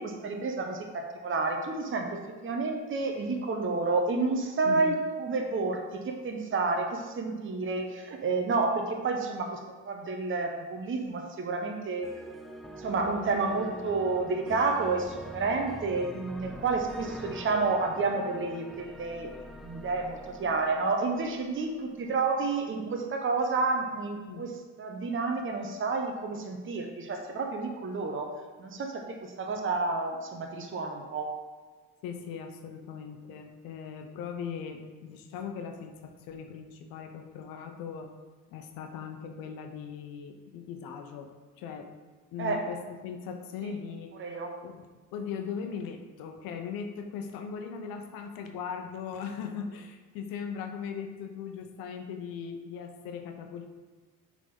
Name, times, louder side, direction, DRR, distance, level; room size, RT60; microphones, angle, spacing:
voice 1, 0.0-9.6 9.8-12.1 12.8-19.3 19.6-24.5 24.8-28.3 28.6-31.4 42.4-42.7 44.2-44.6, right 3 dB, 35° right, 2 dB, 1.0 m, -30 dB
voice 2, 4.6-5.0 24.3-24.5 32.0-38.2 38.5-42.0 42.3-44.1 44.6-53.7, left 6 dB, 75° left, 5 dB, 0.9 m, -39 dB
sound 1, 12.0-22.1, equal, ahead, 0.6 m, -44 dB
6.4 x 3.9 x 5.4 m, 1.4 s
hypercardioid pair, 65°, 35 cm